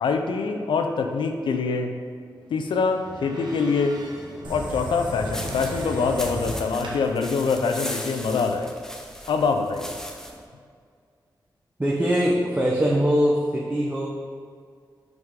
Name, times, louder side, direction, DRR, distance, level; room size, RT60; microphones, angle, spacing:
voice 1, 0.0-1.9 2.5-4.0 4.5-8.8 9.3-9.9, left 4 dB, 90° left, 6 dB, 0.5 m, -24 dB
sound 1, 2.1-7.1, right 1 dB, 55° right, 1.4 m, -43 dB
sound 2, 4.4-9.4, right 1 dB, 75° right, 1.1 m, -36 dB
sound 3, 5.3-10.4, equal, 5° left, 0.8 m, -38 dB
voice 2, 11.8-14.1, equal, 20° right, -4 dB, 1.0 m, -22 dB
5.9 x 5.5 x 3.7 m, 2.1 s
cardioid pair, 50°, 8 cm